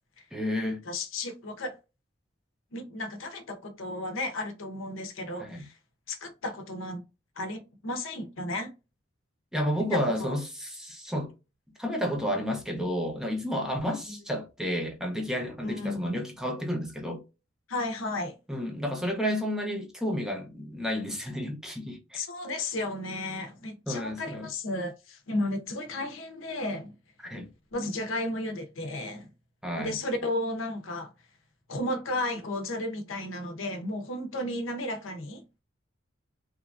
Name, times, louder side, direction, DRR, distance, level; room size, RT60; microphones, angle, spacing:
voice 1, 0.3-0.8 5.4-5.7 9.5-11.3 11.8-17.2 18.5-22.2 23.9-24.5 27.2-27.5 29.6-30.0, equal, 5° right, 0.6 m, -31 dB
voice 2, 0.8-1.8 2.7-5.7 6.1-7.0 7.4-8.7 9.9-10.3 15.6-16.2 17.7-18.3 22.1-26.9 27.7-29.3 29.8-31.1 31.7-35.4, left 1 dB, 75° left, 0.7 m, -33 dB
3.0 x 2.4 x 2.3 m
head